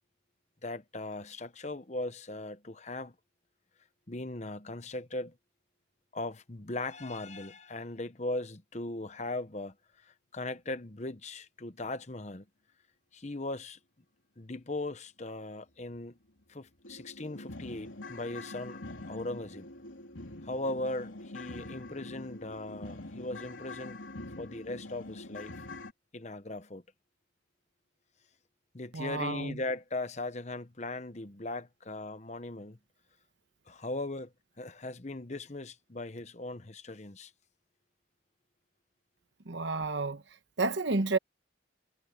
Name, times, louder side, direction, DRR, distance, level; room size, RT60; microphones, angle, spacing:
voice 1, 0.6-3.1 4.1-5.3 6.1-12.4 13.1-13.8 14.4-16.2 16.5-18.8 19.1-19.7 20.4-24.0 24.4-25.6 26.1-26.8 28.7-32.8 33.7-34.3 34.6-37.3, left 2 dB, 35° left, 1.0 m, -38 dB
sound 1, 15.9-16.0 16.4-16.5 16.8-25.9, left 2 dB, 75° left, 3.5 m, -44 dB
voice 2, 28.9-29.6 39.4-40.2 40.6-41.2, right 3 dB, 65° right, 1.2 m, -30 dB
head